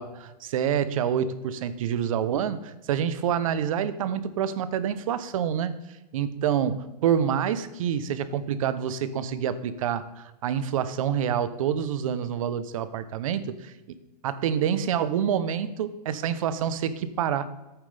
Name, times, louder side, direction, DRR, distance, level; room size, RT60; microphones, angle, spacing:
voice 1, 0.0-5.7 6.1-14.0 14.2-17.5, right 8 dB, 55° right, 13 dB, 0.8 m, -27 dB
11.0 x 9.1 x 3.4 m, 1.0 s
supercardioid pair, 170°, 21 cm